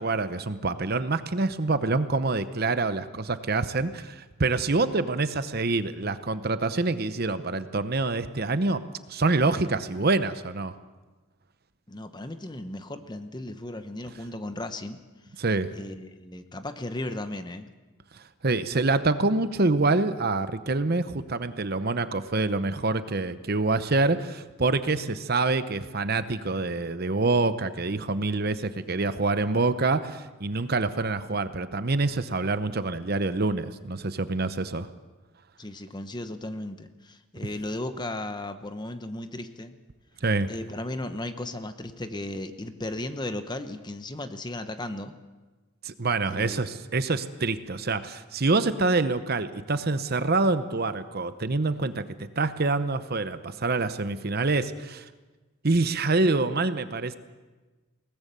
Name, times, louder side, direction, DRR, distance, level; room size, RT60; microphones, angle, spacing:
voice 1, 0.0-8.8 9.1-10.7 15.4-15.7 18.1-34.9 40.2-40.5 45.8-55.1 55.6-57.2, right 3 dB, 45° right, 12 dB, 0.8 m, -26 dB
voice 2, 11.9-15.0 15.7-17.7 35.6-39.8 40.5-45.1 46.3-46.6, left 1 dB, 20° left, 9 dB, 0.9 m, -35 dB
21.5 x 18.5 x 6.8 m, 1.3 s
head